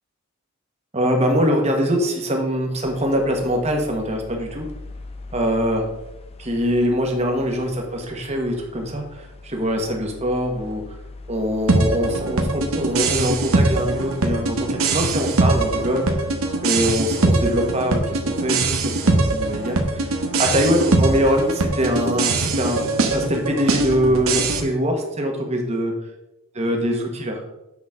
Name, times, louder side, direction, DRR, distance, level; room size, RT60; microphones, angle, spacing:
voice 1, 0.9-4.7 5.3-5.8 6.4-10.8 11.3-16.0 16.6-22.8 23.1-25.9 26.5-27.4, equal, 30° right, 2 dB, 1.4 m, -23 dB
sound 1, 2.8-22.7, left 2 dB, 30° left, 0.6 m, -43 dB
sound 2, 11.7-24.6, right 2 dB, 75° right, 1.0 m, -22 dB
8.2 x 6.1 x 3.7 m, 0.93 s
head